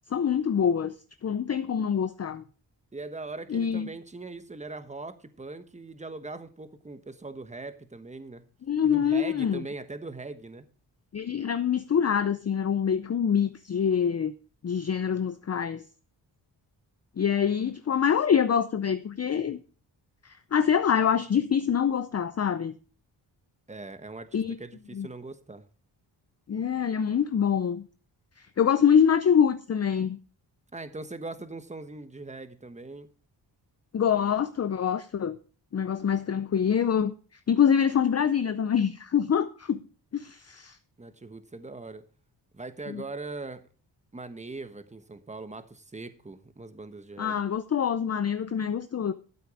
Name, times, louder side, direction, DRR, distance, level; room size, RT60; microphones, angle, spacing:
voice 1, 0.1-0.9 1.2-2.4 3.5-3.9 8.7-9.6 11.1-14.3 14.6-15.8 17.2-19.6 20.2-22.7 24.3-24.6 24.9-25.1 26.5-27.9 28.4-30.2 33.9-35.4 35.7-37.1 37.5-39.8 40.1-40.8 42.9-43.0 47.2-49.1, left 8 dB, 35° left, 0.6 m, -25 dB
voice 2, 2.9-8.4 8.8-10.6 23.7-25.7 30.7-33.1 41.0-42.0 42.5-43.6 44.1-47.4, right 3 dB, 15° right, 1.2 m, -41 dB
12.5 x 8.2 x 4.8 m
cardioid pair, 90°, 45 cm